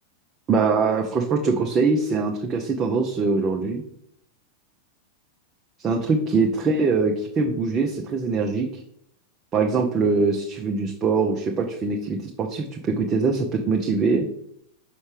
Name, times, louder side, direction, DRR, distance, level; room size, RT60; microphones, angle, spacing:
voice 1, 0.5-3.8 5.8-8.8 9.5-14.3, right 4 dB, 25° right, 1 dB, 0.7 m, -23 dB
5.9 x 5.3 x 3.2 m, 0.73 s
figure-of-eight pair, 90°, 0 cm